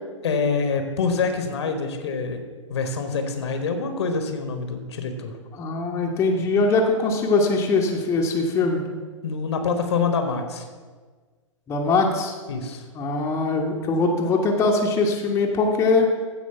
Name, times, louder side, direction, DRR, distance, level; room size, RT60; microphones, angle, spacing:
voice 1, 0.2-2.4 2.7-5.3 9.2-10.6 12.5-12.8, left 4 dB, 55° left, 6 dB, 1.3 m, -26 dB
voice 2, 5.5-8.8 11.7-12.3 12.9-16.1, left 3 dB, 15° left, 0 dB, 1.1 m, -22 dB
15.0 x 5.0 x 5.7 m, 1.5 s
figure-of-eight pair, 110°, 17 cm